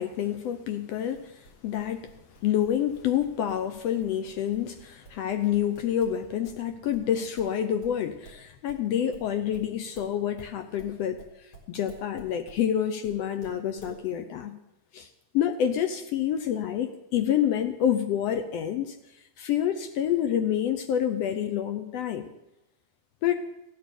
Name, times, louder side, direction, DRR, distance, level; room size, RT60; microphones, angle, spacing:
voice 1, 0.0-2.1 2.4-11.2 11.7-14.5 14.9-15.1 15.3-19.0 19.4-22.3 23.2-23.4, left 10 dB, 70° left, 8 dB, 1.7 m, -28 dB
sound 1, 1.1-6.6 6.9-12.6 13.0-14.0, right 2 dB, 35° left, 4.4 m, -50 dB
15.0 x 8.9 x 6.8 m, 0.93 s
omnidirectional pair, 3.3 m